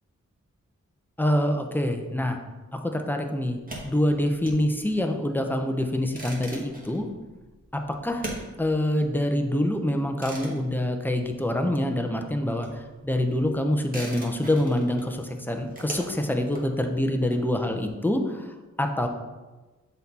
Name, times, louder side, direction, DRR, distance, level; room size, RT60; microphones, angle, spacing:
voice 1, 1.2-2.4 2.7-7.1 7.7-8.3 8.6-18.5 18.8-19.1, left 1 dB, 5° left, 4 dB, 0.6 m, -26 dB
sound 1, 3.5-11.8 12.1-17.9, right 1 dB, 30° right, 1.3 m, -42 dB
6.4 x 4.1 x 4.2 m, 1.2 s
wide cardioid pair, 110°, 30 cm